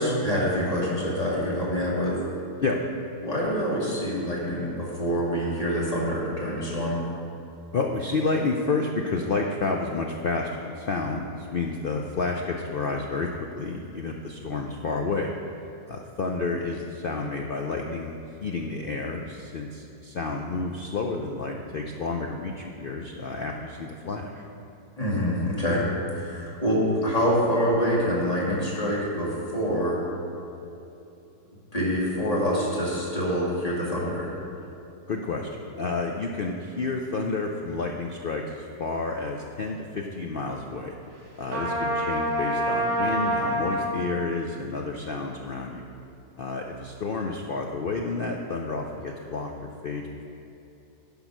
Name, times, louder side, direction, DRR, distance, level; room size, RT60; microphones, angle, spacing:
voice 1, 0.0-2.1 3.2-7.0 25.0-25.9 26.1-30.0 31.7-34.3, equal, 20° left, -6 dB, 2.3 m, -26 dB
voice 2, 7.7-15.3 15.9-24.4 35.1-40.9 41.4-45.9 46.4-50.1, left 3 dB, 80° left, 1 dB, 0.5 m, -30 dB
Trumpet, 41.5-44.0, equal, 65° right, 1.9 m, -26 dB
10.5 x 5.6 x 6.0 m, 2.9 s
omnidirectional pair, 1.7 m